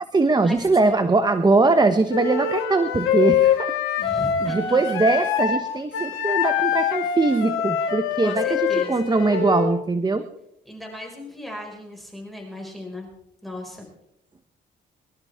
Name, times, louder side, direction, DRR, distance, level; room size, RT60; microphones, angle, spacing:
voice 1, 0.1-3.7 4.0-4.1 4.4-8.6 8.9-10.3, right 3 dB, 20° right, 10 dB, 1.0 m, -21 dB
Wind instrument woodwind instrument, 2.1-5.6 5.9-9.7, left 8 dB, 80° left, 2.8 m, -24 dB
voice 2, 4.0-5.0 8.2-9.0 10.7-13.1 13.4-13.9, left 1 dB, ahead, 1 dB, 5.3 m, -36 dB
24.0 x 12.5 x 3.6 m, 0.81 s
cardioid pair, 90°, 20 cm